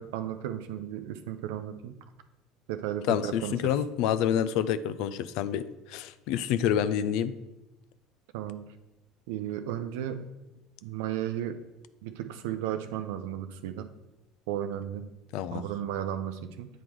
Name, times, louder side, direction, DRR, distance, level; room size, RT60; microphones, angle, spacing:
voice 1, 0.0-1.9 2.7-3.7 8.3-8.7 9.3-10.2 10.8-11.6 12.0-13.9 14.5-15.1 15.5-16.7, right 10 dB, 75° right, 9 dB, 0.5 m, -34 dB
voice 2, 3.1-5.6 5.9-7.3 15.3-15.6, left 9 dB, 65° left, 14 dB, 0.4 m, -28 dB
8.2 x 3.7 x 4.6 m, 1.0 s
hypercardioid pair, 75°, 0 cm